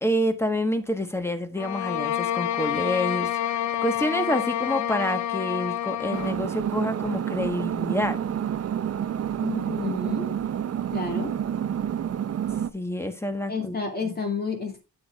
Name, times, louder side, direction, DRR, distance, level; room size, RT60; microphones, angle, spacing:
voice 1, 0.0-8.2 12.7-13.8 14.0-14.2, equal, 10° left, 8 dB, 1.2 m, -28 dB
sound 1, 1.6-6.4, left 11 dB, 60° left, 0.6 m, -28 dB
sound 2, 6.1-12.7, right 9 dB, 50° right, 0.6 m, -28 dB
voice 2, 9.4-10.3 10.9-11.3 13.5-14.8, left 4 dB, 30° left, 3 dB, 2.2 m, -30 dB
8.5 x 8.1 x 2.3 m, 0.29 s
cardioid pair, 110°, 33 cm